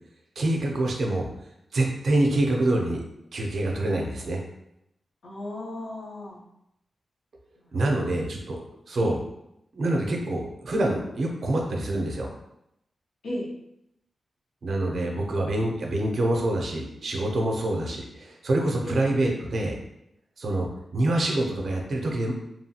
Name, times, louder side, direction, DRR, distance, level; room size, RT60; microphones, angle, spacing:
voice 1, 0.4-1.3 1.7-3.0 3.3-4.4 7.7-8.6 8.9-9.2 9.7-12.3 14.6-19.8 20.4-20.7 20.9-22.3, right 1 dB, 55° right, 0 dB, 0.5 m, -26 dB
voice 2, 5.2-6.4 7.6-7.8 9.0-9.2 13.2-13.5 18.8-19.0, left 1 dB, 85° left, -5 dB, 0.8 m, -35 dB
2.9 x 2.3 x 2.8 m, 0.81 s
wide cardioid pair, 165°, 0 cm